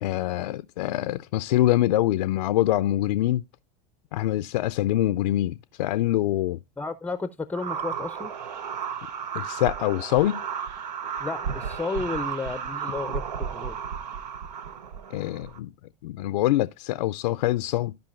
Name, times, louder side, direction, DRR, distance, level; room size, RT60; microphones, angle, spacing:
voice 1, 0.0-3.4 4.1-6.6 9.3-10.4 15.1-15.7 16.0-18.0, left 14 dB, 75° left, 0.5 m, -24 dB
voice 2, 6.8-8.3 11.2-13.8, left 3 dB, 5° left, 0.5 m, -32 dB
sound 1, 7.5-15.6, right 7 dB, 80° right, 0.9 m, -33 dB
14.5 x 5.1 x 2.5 m
hypercardioid pair, 90°, 21 cm